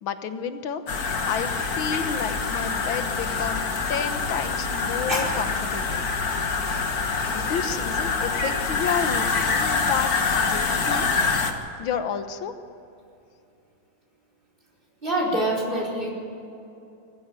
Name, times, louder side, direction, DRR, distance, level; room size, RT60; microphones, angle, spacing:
voice 1, 0.0-6.0 7.3-10.1 10.4-11.1 11.8-12.5, left 7 dB, 80° left, 9 dB, 1.9 m, -31 dB
sound 1, 0.9-11.5, left 4 dB, 50° left, 2.0 m, -25 dB
voice 2, 15.0-16.1, right 1 dB, 25° right, -2 dB, 4.8 m, -25 dB
21.0 x 15.0 x 9.0 m, 2.8 s
omnidirectional pair, 2.2 m